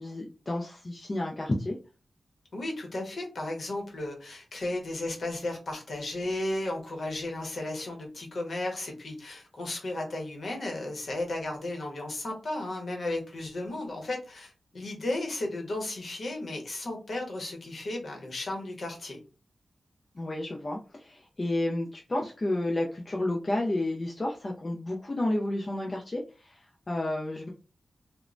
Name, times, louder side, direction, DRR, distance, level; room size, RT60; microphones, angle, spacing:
voice 1, 0.0-1.8 20.2-27.5, left 1 dB, 30° left, -1 dB, 0.4 m, -31 dB
voice 2, 2.5-19.2, left 2 dB, 55° left, 1 dB, 0.8 m, -34 dB
3.0 x 2.0 x 2.5 m, 0.34 s
wide cardioid pair, 150°, 0 cm